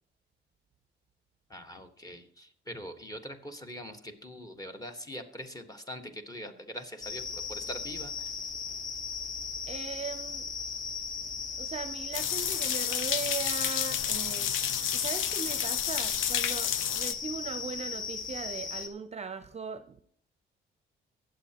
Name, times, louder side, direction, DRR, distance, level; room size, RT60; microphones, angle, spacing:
voice 1, 1.5-8.3, equal, 20° left, 6 dB, 1.4 m, -43 dB
sound 1, 7.0-18.9, left 5 dB, 40° left, 1.3 m, -37 dB
voice 2, 9.7-10.5 11.6-14.6 14.9-20.0, right 5 dB, 35° right, 11 dB, 0.6 m, -39 dB
sound 2, 12.1-17.1, left 9 dB, 80° left, 0.6 m, -30 dB
22.5 x 7.8 x 2.9 m, 0.63 s
cardioid pair, 90°, 20 cm